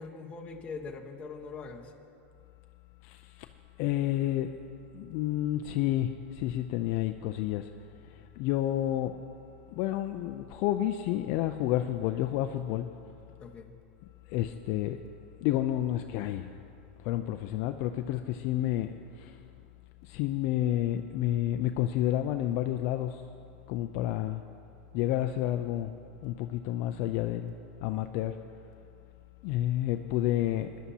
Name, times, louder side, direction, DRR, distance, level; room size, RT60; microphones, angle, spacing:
voice 1, 0.0-1.9 13.4-13.7, left 4 dB, 20° left, 1 dB, 1.1 m, -42 dB
voice 2, 3.8-4.6 4.9-7.7 8.4-9.2 9.8-12.9 14.3-15.0 15.4-16.5 17.0-19.3 20.0-23.2 23.7-24.4 24.9-25.9 26.2-27.5 27.8-28.3 29.4-30.7, left 13 dB, 50° left, 7 dB, 0.4 m, -30 dB
20.0 x 11.0 x 2.8 m, 2.5 s
supercardioid pair, 140°, 6 cm